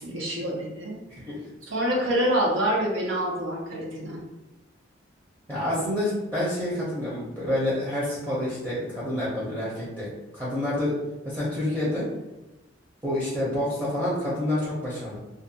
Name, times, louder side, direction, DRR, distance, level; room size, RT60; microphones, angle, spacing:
voice 1, 0.0-1.0 1.7-4.2, equal, 75° right, -3 dB, 0.7 m, -26 dB
voice 2, 1.1-1.4 5.5-10.1 10.3-10.9 11.2-12.1 13.0-15.2, left 1 dB, 10° right, -9 dB, 0.6 m, -28 dB
2.4 x 2.2 x 2.7 m, 1.0 s
head